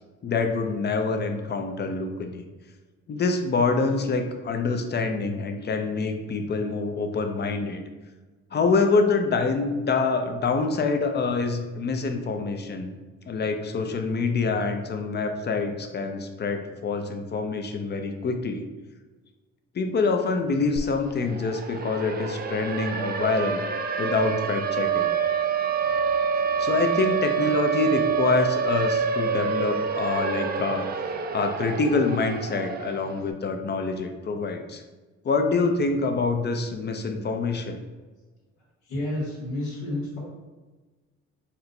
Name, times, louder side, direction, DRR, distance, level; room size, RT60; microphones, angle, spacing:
voice 1, 0.2-2.4 3.1-7.8 8.5-12.9 13.3-18.6 19.7-23.6 24.0-25.1 26.6-30.9 31.3-34.8 35.2-37.8, left 4 dB, 35° left, 5 dB, 0.5 m, -26 dB
Siren, 20.8-20.9 21.2-33.2, right 6 dB, 35° right, 0.4 m, -27 dB
voice 2, 38.9-40.2, left 1 dB, 80° left, -7 dB, 1.3 m, -30 dB
4.4 x 2.2 x 3.8 m, 1.2 s
cardioid pair, 90°, 30 cm